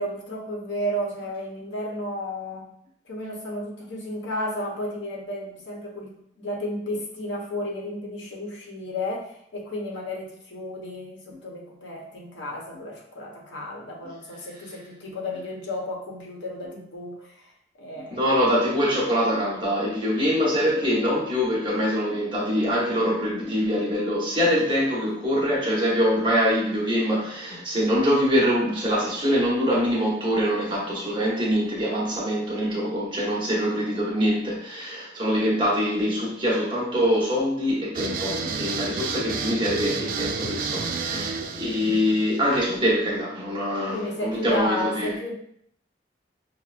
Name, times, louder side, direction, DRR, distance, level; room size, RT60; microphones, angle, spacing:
voice 1, 0.0-2.7 3.1-17.5 17.8-18.2 41.1-41.6 43.9-45.3, left 1 dB, 80° left, -1 dB, 0.9 m, -33 dB
voice 2, 18.1-45.1, equal, 25° right, -4 dB, 1.0 m, -24 dB
sound 1, 37.9-42.9, right 5 dB, 45° right, 0.3 m, -31 dB
5.8 x 2.1 x 2.5 m, 0.68 s
head